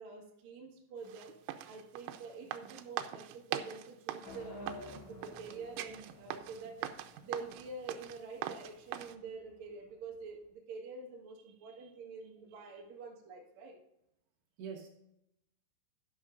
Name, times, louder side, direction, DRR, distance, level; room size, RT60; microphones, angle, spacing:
voice 1, 0.0-1.3 1.6-6.9 7.2-13.8, right 4 dB, 50° right, -1 dB, 2.2 m, -47 dB
sound 1, 1.1-9.2, right 10 dB, 90° right, 3.3 m, -44 dB
sound 2, 4.2-10.3, equal, 50° left, 2.4 m, -54 dB
voice 2, 11.6-11.9 12.5-12.7 14.6-14.9, right 6 dB, 70° right, 0 dB, 3.0 m, -47 dB
11.5 x 11.5 x 2.5 m, 0.81 s
omnidirectional pair, 5.6 m